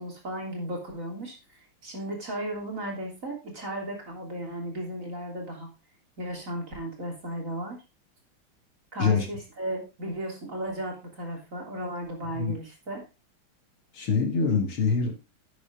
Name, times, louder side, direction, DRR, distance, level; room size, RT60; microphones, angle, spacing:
voice 1, 0.0-1.4 1.8-5.7 6.2-7.8 8.9-13.0, right 1 dB, 35° right, 1 dB, 3.6 m, -35 dB
voice 2, 13.9-15.3, left 5 dB, 80° left, 4 dB, 3.1 m, -25 dB
11.0 x 8.3 x 3.7 m, 0.25 s
omnidirectional pair, 2.3 m